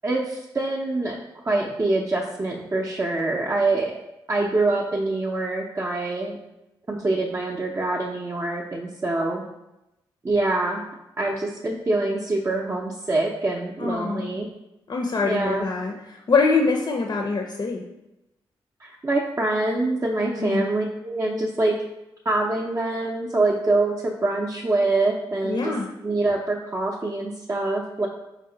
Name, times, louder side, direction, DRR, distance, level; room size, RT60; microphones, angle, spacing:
voice 1, 0.0-4.0 4.3-6.4 6.9-9.4 10.2-10.8 11.2-14.5 15.2-15.7 18.8-21.7 22.2-25.7 26.0-28.1, right 2 dB, 30° right, -2 dB, 0.5 m, -25 dB
voice 2, 13.8-14.3 14.9-17.8 20.4-20.7 25.4-25.9, left 4 dB, 45° left, 2 dB, 0.5 m, -24 dB
4.0 x 2.1 x 3.7 m, 0.94 s
supercardioid pair, 45°, 10 cm